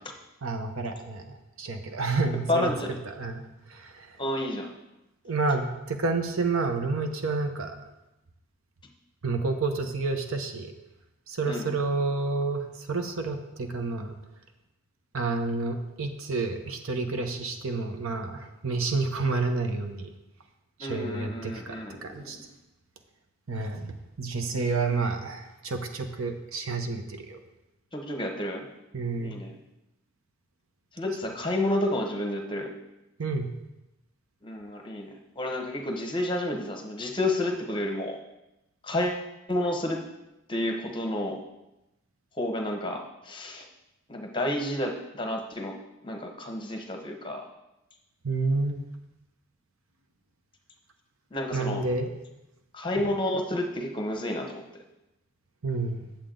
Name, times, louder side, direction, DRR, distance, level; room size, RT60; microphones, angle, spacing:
voice 1, 0.4-2.7 3.0-4.2 5.2-7.8 9.2-10.7 11.3-14.1 15.1-20.1 20.8-21.8 22.0-22.4 23.5-27.4 28.9-29.4 33.2-33.5 48.2-48.8 51.5-52.1 55.6-56.0, right 3 dB, 75° right, 5 dB, 0.9 m, -29 dB
voice 2, 2.5-2.9 4.2-4.7 11.5-11.7 20.8-22.4 27.9-28.7 29.2-29.5 31.0-32.7 34.4-38.2 38.8-40.0 40.5-41.4 42.4-43.6 44.1-45.8 46.0-47.5 51.3-51.8 52.7-54.6, left 1 dB, 20° left, 2 dB, 0.9 m, -30 dB
8.8 x 7.3 x 3.8 m, 0.95 s
head